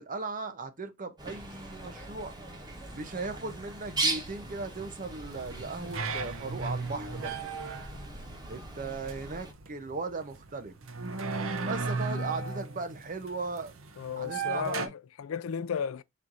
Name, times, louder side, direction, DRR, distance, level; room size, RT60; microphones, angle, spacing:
voice 1, 0.0-2.3 2.9-7.5 8.5-10.8 11.6-13.7 14.1-14.9, right 3 dB, 40° right, 0.7 m, -37 dB
Bird, 1.2-9.5, right 2 dB, 20° right, 1.1 m, -39 dB
sound 1, 5.3-14.9, right 4 dB, 70° right, 0.8 m, -36 dB
voice 2, 14.0-16.0, left 7 dB, 75° left, 0.4 m, -34 dB
4.3 x 2.6 x 4.6 m
head